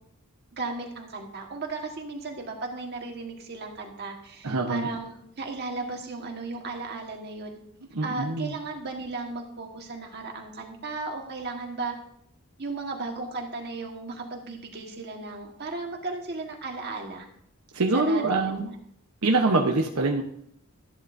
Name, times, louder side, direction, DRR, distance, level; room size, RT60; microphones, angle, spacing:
voice 1, 0.6-7.6 8.0-11.9 12.6-17.3 17.9-18.7, right 3 dB, 50° right, 1 dB, 1.5 m, -35 dB
voice 2, 4.4-4.9 7.9-8.5 17.7-18.7 19.2-20.2, right 3 dB, 75° right, 1 dB, 1.0 m, -24 dB
13.5 x 11.5 x 2.6 m, 0.72 s
head